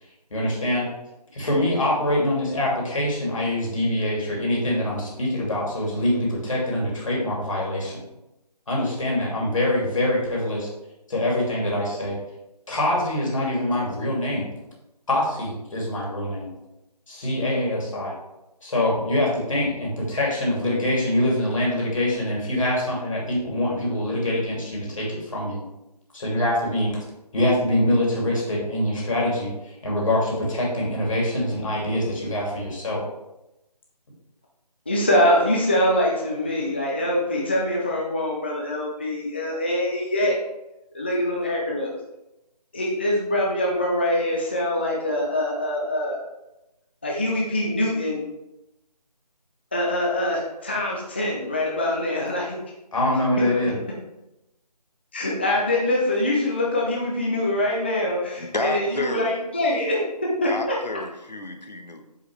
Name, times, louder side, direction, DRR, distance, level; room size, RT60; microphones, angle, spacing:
voice 1, 0.3-0.9 1.3-8.0 8.7-10.7 11.1-12.2 12.7-14.5 15.1-16.5 17.1-18.2 18.6-25.6 26.1-27.0 27.3-33.0 52.9-53.8, left 1 dB, 50° left, -3 dB, 2.6 m, -24 dB
voice 2, 34.9-40.4 40.9-42.0 42.7-46.2 47.0-48.2 49.7-52.6 55.1-60.8, left 1 dB, 15° left, -2 dB, 0.5 m, -24 dB
voice 3, 58.4-59.3 60.4-62.0, left 2 dB, 85° left, 5 dB, 1.1 m, -30 dB
8.3 x 4.8 x 3.2 m, 0.93 s
figure-of-eight pair, 160°, 21 cm